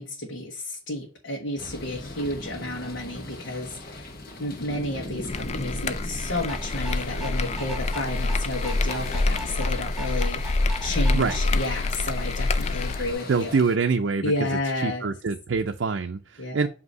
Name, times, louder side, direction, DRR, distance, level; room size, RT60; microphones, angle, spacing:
voice 1, 0.0-4.1 4.4-13.5 14.2-15.1 16.4-16.7, left 1 dB, 70° left, 0 dB, 1.2 m, -31 dB
sound 1, 1.6-13.8, left 2 dB, 50° left, 1.1 m, -39 dB
sound 2, 5.3-13.1, left 2 dB, 35° left, 0.4 m, -27 dB
sound 3, 6.4-11.4, right 2 dB, 5° right, 0.9 m, -40 dB
voice 2, 13.3-16.7, right 4 dB, 70° right, 5 dB, 0.5 m, -25 dB
8.1 x 2.8 x 5.3 m, 0.38 s
head